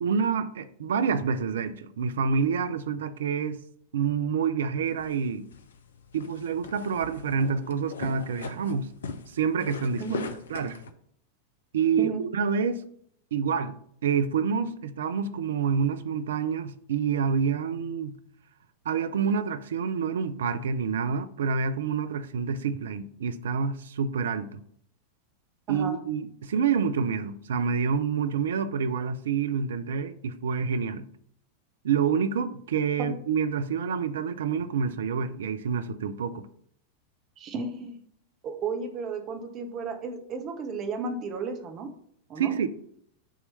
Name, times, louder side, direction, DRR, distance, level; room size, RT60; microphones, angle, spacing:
voice 1, 0.0-3.6 3.9-5.5 6.1-8.9 9.3-10.0 10.5-10.8 11.7-12.8 13.3-13.7 14.0-18.2 18.9-24.6 25.7-31.1 31.8-36.5 42.4-42.7, right 6 dB, 60° right, 0.4 m, -27 dB
sound 1, 4.9-10.9, left 4 dB, 65° left, 0.5 m, -40 dB
voice 2, 37.4-38.0 38.4-41.9 42.3-42.5, right 4 dB, 35° right, 0.9 m, -33 dB
6.3 x 3.0 x 5.5 m
figure-of-eight pair, 90°, 0 cm